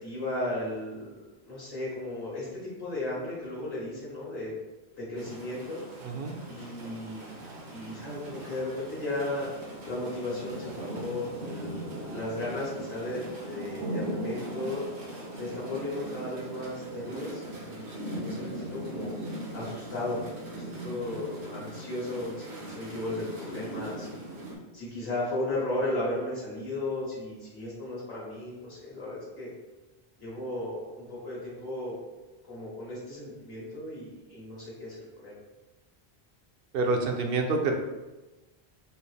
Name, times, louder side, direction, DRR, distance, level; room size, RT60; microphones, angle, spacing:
voice 1, 0.0-4.5 5.0-5.8 6.5-7.4 7.7-9.5 9.8-11.8 12.1-14.8 15.3-19.1 19.5-24.2 24.7-29.5 30.2-32.0 32.4-35.3, left 1 dB, 70° left, -8 dB, 1.7 m, -35 dB
sound 1, 5.2-24.6, right 1 dB, 85° right, 1.3 m, -39 dB
voice 2, 6.0-6.3 36.7-37.8, right 3 dB, 65° right, 3 dB, 0.8 m, -27 dB
4.5 x 2.7 x 3.2 m, 1.1 s
omnidirectional pair, 1.1 m